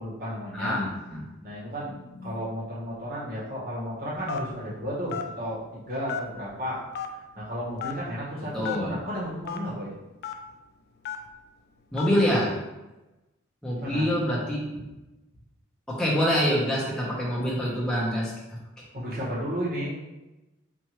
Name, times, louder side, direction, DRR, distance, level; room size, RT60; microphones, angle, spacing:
voice 1, 0.0-0.8 1.4-2.0 2.2-6.8 7.3-9.9 13.8-14.1 14.7-14.8 18.9-19.9, equal, 50° right, -7 dB, 1.5 m, -33 dB
voice 2, 0.5-1.3 2.1-2.3 8.5-8.9 11.9-12.5 13.6-14.7 15.9-18.6, equal, 5° left, -6 dB, 0.9 m, -26 dB
Telephone, 4.3-4.6 5.1-5.3 6.1-6.5 6.9-7.1 7.8-8.0 8.6-8.8 9.5-9.6 10.2-10.3 11.0-11.3 12.0-12.2, left 8 dB, 50° left, 0.3 m, -32 dB
4.5 x 2.6 x 3.0 m, 1.0 s
head